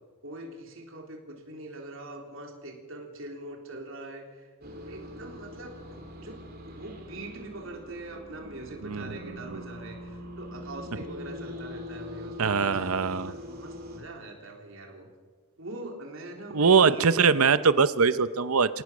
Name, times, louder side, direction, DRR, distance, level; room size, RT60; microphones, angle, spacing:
voice 1, 0.2-4.5 4.9-6.4 6.7-15.1 15.6-17.3, right 2 dB, 65° right, 1 dB, 3.6 m, -43 dB
sound 1, 4.6-14.0, left 1 dB, 45° right, 3.6 m, -42 dB
voice 2, 8.8-9.6 12.4-13.3 16.5-18.8, right 5 dB, 85° right, 14 dB, 0.8 m, -23 dB
25.5 x 18.0 x 6.2 m, 1.5 s
head